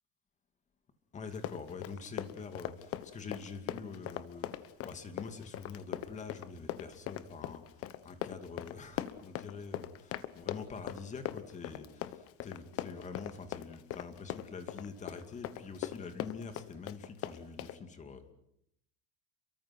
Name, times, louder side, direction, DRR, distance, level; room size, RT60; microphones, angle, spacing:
voice 1, 1.1-18.3, left 5 dB, 25° left, 8 dB, 2.4 m, -45 dB
Run, 1.3-17.8, left 13 dB, 50° left, 1.3 m, -40 dB
29.5 x 23.5 x 6.0 m, 0.75 s
cardioid pair, 160°, 30 cm